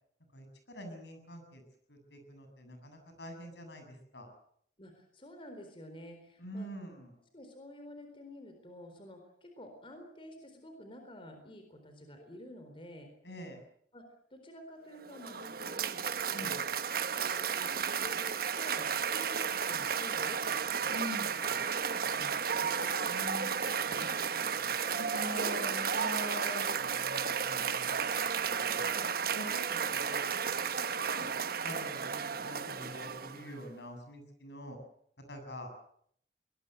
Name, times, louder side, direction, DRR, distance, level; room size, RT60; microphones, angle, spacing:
voice 1, 0.3-1.6 1.9-4.3 6.4-7.1 13.2-13.6 16.3-16.6 20.9-21.5 23.1-24.7 25.0-28.2 28.5-29.1 29.3-31.3 31.6-34.8 35.3-35.7, equal, 75° left, 6 dB, 7.9 m, -45 dB
voice 2, 4.8-6.7 7.3-13.1 13.9-14.0 14.3-16.7 17.3-20.9 21.4-22.9 29.7-29.9, equal, 30° left, 5 dB, 4.2 m, -50 dB
Cheering / Applause, 15.0-33.6, right 6 dB, 55° right, 1.1 m, -33 dB
23.0 x 20.5 x 8.0 m, 0.67 s
head